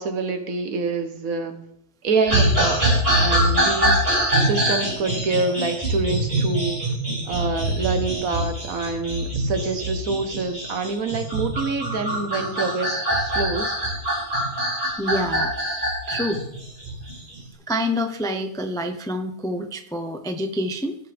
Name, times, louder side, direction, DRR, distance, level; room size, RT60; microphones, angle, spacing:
voice 1, 0.0-1.6 2.0-6.9 7.3-13.8, right 4 dB, 65° right, 7 dB, 1.6 m, -26 dB
sound 1, 2.3-17.4, right 1 dB, 40° right, 3.9 m, -24 dB
voice 2, 15.0-15.5 16.1-16.4 17.7-21.0, equal, 5° left, 7 dB, 0.4 m, -27 dB
18.0 x 6.7 x 3.4 m, 0.77 s
omnidirectional pair, 1.6 m